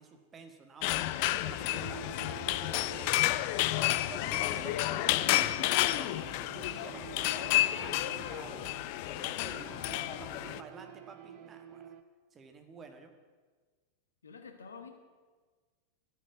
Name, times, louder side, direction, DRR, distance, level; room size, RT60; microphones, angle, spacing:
voice 1, 0.0-3.3 3.8-8.7 9.0-11.9 12.3-13.1, right 5 dB, 20° right, 5 dB, 1.6 m, -50 dB
sound 1, 0.8-10.6, left 16 dB, 45° left, 0.4 m, -31 dB
sound 2, 1.5-12.0, right 10 dB, 40° right, 0.8 m, -49 dB
voice 2, 4.1-4.8 14.2-14.9, left 5 dB, 70° left, 6 dB, 1.6 m, -48 dB
11.5 x 8.7 x 8.3 m, 1.4 s
figure-of-eight pair, 90°, 0 cm